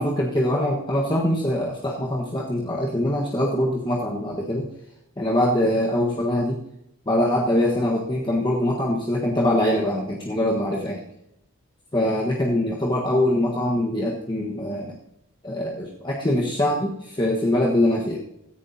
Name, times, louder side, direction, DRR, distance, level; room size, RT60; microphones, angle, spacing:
voice 1, 0.0-4.7 5.2-6.6 7.1-11.0 11.9-14.9 15.4-18.2, left 1 dB, 20° left, -3 dB, 1.4 m, -23 dB
17.0 x 14.5 x 2.8 m, 0.84 s
head